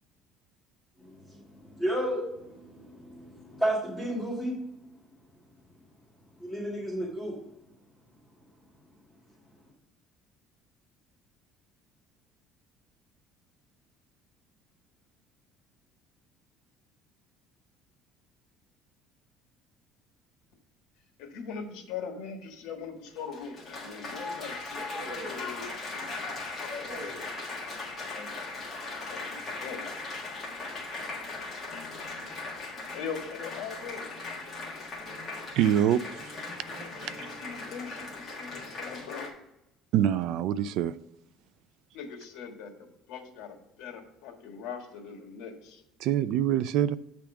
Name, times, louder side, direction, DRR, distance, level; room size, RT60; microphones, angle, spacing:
voice 1, 1.0-4.6 6.4-7.4, right 1 dB, 5° left, 1.8 m, -32 dB
voice 2, 21.2-26.2 26.6-27.3 28.1-28.3 29.1-29.9 32.9-34.1 37.4-39.3 41.9-42.7 43.1-45.8, left 6 dB, 80° left, 1.6 m, -41 dB
Applause, 23.1-39.3, left 3 dB, 25° left, 1.5 m, -38 dB
voice 3, 35.6-36.0 37.0-37.1 39.9-41.0 46.0-47.0, right 10 dB, 55° right, 0.3 m, -25 dB
8.7 x 3.5 x 5.9 m
cardioid pair, 180°, 0 cm